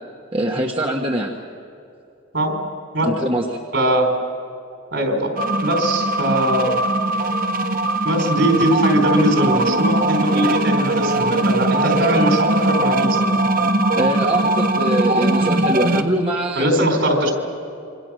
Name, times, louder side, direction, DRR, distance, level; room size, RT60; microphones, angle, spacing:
voice 1, 0.3-1.3 3.0-3.4 13.9-16.7, right 1 dB, 25° right, 0 dB, 1.4 m, -22 dB
voice 2, 3.7-4.1 4.9-5.3 5.6-6.8 8.0-13.4 16.6-17.3, right 1 dB, 60° right, 3 dB, 4.5 m, -20 dB
sound 1, 5.4-16.0, right 2 dB, 45° right, 1.0 m, -20 dB
27.0 x 25.0 x 6.4 m, 2.5 s
head